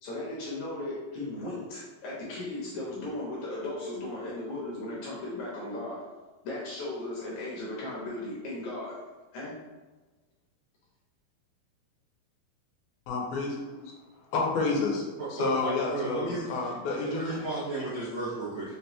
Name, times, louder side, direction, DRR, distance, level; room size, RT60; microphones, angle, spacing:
voice 1, 0.0-6.0 6.4-9.0 9.3-9.6, left 2 dB, 70° left, -6 dB, 1.8 m, -36 dB
voice 2, 13.1-13.9 14.3-15.0 15.3-17.4, left 3 dB, 90° left, -1 dB, 2.5 m, -30 dB
voice 3, 15.2-16.5 17.0-18.7, right 2 dB, 75° right, -11 dB, 1.1 m, -33 dB
5.8 x 2.2 x 2.9 m, 1.2 s
omnidirectional pair, 4.1 m